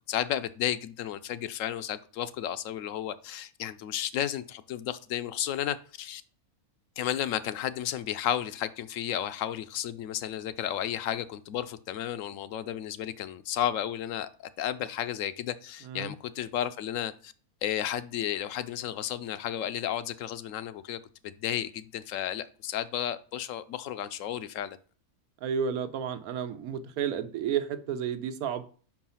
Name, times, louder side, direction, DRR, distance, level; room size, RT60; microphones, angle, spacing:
voice 1, 0.1-6.2 7.0-17.3 17.6-24.8, left 11 dB, 70° left, 0.9 m, -33 dB
voice 2, 25.4-28.6, right 8 dB, 80° right, 1.2 m, -31 dB
5.7 x 4.7 x 5.6 m
omnidirectional pair, 1.5 m